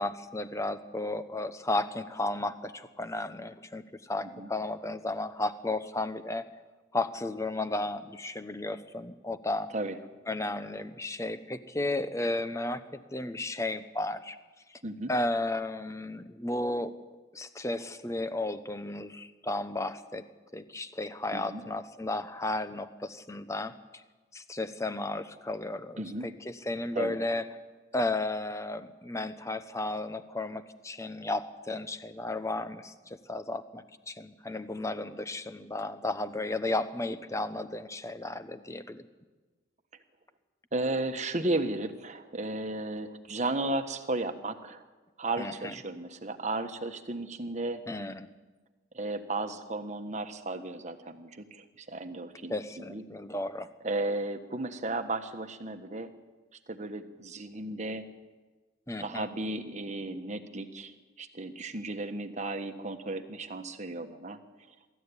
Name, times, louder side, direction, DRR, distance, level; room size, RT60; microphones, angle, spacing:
voice 1, 0.0-3.8 4.1-6.4 6.9-9.7 10.3-12.8 13.1-14.4 15.1-16.9 17.3-20.2 20.5-24.0 24.3-27.5 27.9-39.1 45.4-45.7 47.9-48.3 52.5-53.7 58.9-59.3, left 2 dB, 15° left, 11 dB, 0.9 m, -34 dB
voice 2, 21.3-21.6 26.0-26.3 26.9-27.2 40.7-44.8 45.2-47.8 48.9-52.5 52.9-53.0 53.8-56.1 56.7-58.1 59.0-64.4, right 2 dB, 35° right, 8 dB, 1.4 m, -34 dB
23.5 x 14.0 x 9.8 m, 1.3 s
head